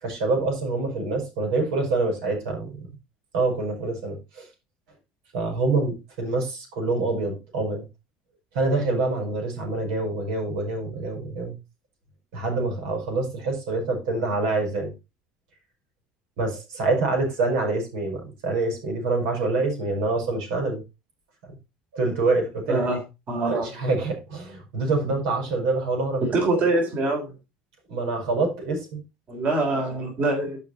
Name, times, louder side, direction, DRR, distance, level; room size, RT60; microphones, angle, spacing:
voice 1, 0.0-2.9 3.3-4.5 5.3-7.9 8.5-11.6 12.3-14.9 16.4-20.8 21.5-21.6 21.9-22.8 23.4-26.3 27.9-29.0, right 3 dB, 80° right, 2 dB, 5.3 m, -26 dB
voice 2, 22.7-23.0 23.3-23.7 26.2-27.3 29.3-30.6, right 2 dB, 45° right, 2 dB, 3.6 m, -24 dB
12.0 x 5.2 x 4.1 m, 0.26 s
supercardioid pair, 95°, 4 cm